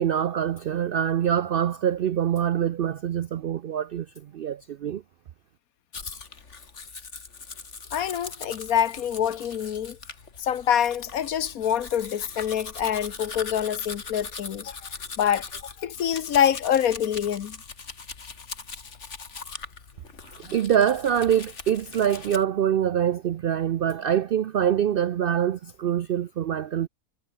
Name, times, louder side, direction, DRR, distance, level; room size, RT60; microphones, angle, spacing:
voice 1, 0.0-5.0 20.4-26.9, right 9 dB, 70° right, 0.5 m, -25 dB
Domestic sounds home sounds, 5.9-22.4, left 4 dB, 55° left, 2.4 m, -41 dB
voice 2, 7.9-10.0 10.4-17.6, left 9 dB, 75° left, 1.4 m, -26 dB
omnidirectional pair, 1.5 m